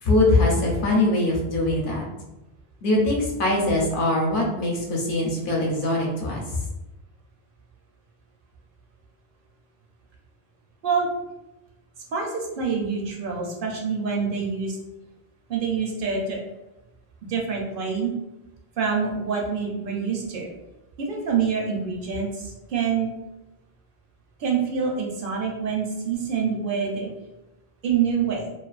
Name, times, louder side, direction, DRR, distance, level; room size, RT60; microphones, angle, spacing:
voice 1, 0.0-2.1 2.8-6.4, left 2 dB, 60° left, -2 dB, 0.7 m, -22 dB
voice 2, 12.1-14.8 15.5-16.4 17.3-18.1 18.8-20.5 21.0-23.1 24.4-27.1 27.8-28.5, right 6 dB, 65° right, -1 dB, 0.7 m, -26 dB
2.4 x 2.4 x 2.3 m, 0.97 s
omnidirectional pair, 1.0 m